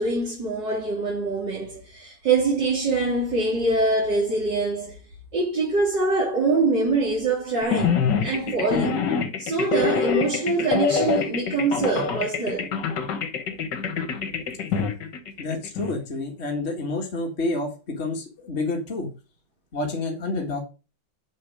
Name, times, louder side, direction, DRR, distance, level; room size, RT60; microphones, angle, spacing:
voice 1, 0.0-5.0 5.3-9.1 9.4-12.7, right 3 dB, 65° right, 3.7 m, -24 dB
sound 1, 7.6-16.0, left 6 dB, 70° left, 2.0 m, -25 dB
voice 2, 15.4-19.1 19.7-20.6, left 2 dB, 35° left, 2.1 m, -29 dB
9.6 x 5.8 x 4.9 m
omnidirectional pair, 2.0 m